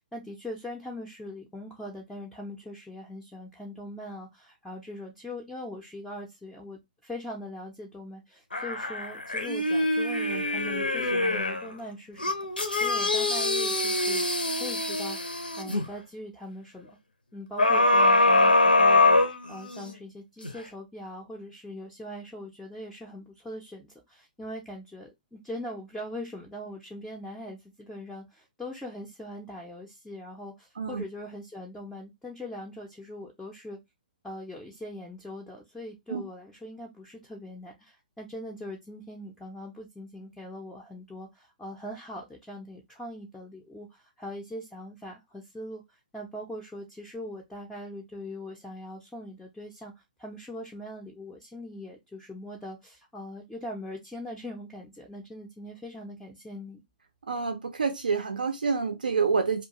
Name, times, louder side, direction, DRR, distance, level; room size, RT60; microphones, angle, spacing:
voice 1, 0.1-12.3 12.8-14.3 14.5-16.9 17.3-19.2 19.5-33.8 34.2-49.9 50.2-56.8, left 1 dB, 5° left, 0.4 m, -41 dB
sound 1, 8.5-11.7 12.2-15.8 17.6-19.9 20.4-20.5, left 2 dB, 80° left, 0.6 m, -24 dB
voice 2, 57.2-59.6, right 5 dB, 70° right, 0.4 m, -28 dB
2.3 x 2.2 x 2.7 m
figure-of-eight pair, 120°, 5 cm